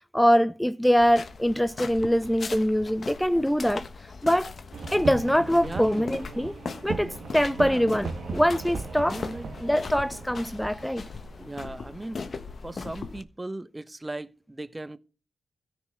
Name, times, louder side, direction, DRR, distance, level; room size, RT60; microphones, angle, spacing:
voice 1, 0.1-4.5 4.9-6.6 6.8-9.2 9.6-11.1, equal, 5° left, 0.6 m, -23 dB
sound 1, 1.0-13.2, left 4 dB, 55° left, 1.4 m, -39 dB
sound 2, 4.7-12.2, right 4 dB, 70° right, 1.9 m, -38 dB
voice 2, 5.6-6.0 7.6-7.9 9.0-9.5 11.4-12.3 12.6-15.0, right 2 dB, 25° right, 1.1 m, -37 dB
13.5 x 6.1 x 8.1 m
supercardioid pair, 40°, 0 cm